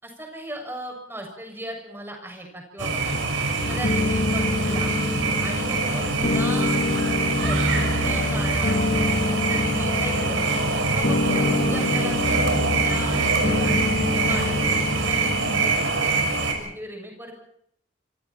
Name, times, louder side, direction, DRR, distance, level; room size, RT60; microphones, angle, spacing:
voice 1, 0.0-3.1 3.7-5.0 5.4-8.9 9.3-10.5 10.9-13.9 14.2-17.3, right 1 dB, 10° right, 2 dB, 6.7 m, -37 dB
sound 1, 2.8-16.5, right 3 dB, 85° right, 5.5 m, -25 dB
sound 2, 3.6-15.7, left 2 dB, 50° left, 1.4 m, -26 dB
28.0 x 26.5 x 4.4 m, 0.70 s
head